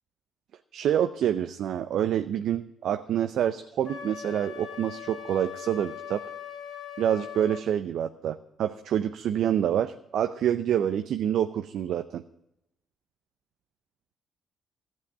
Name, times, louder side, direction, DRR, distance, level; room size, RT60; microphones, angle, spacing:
voice 1, 0.7-6.2 7.0-12.2, right 10 dB, 70° right, 9 dB, 0.6 m, -27 dB
Wind instrument woodwind instrument, 3.8-7.6, left 8 dB, 60° left, 3.3 m, -40 dB
14.5 x 7.7 x 8.8 m, 0.84 s
supercardioid pair, 55°, 0 cm